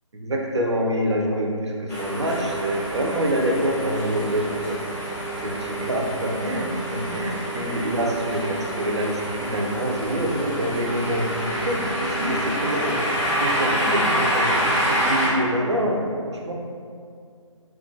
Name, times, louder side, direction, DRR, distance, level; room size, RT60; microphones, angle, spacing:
voice 1, 0.1-4.8 5.4-13.0 13.4-14.6 14.9-16.5, equal, 60° right, 0 dB, 0.4 m, -26 dB
sound 1, 1.9-15.3, right 1 dB, 5° left, 0.5 m, -27 dB
2.3 x 2.2 x 2.6 m, 2.3 s
figure-of-eight pair, 150°, 17 cm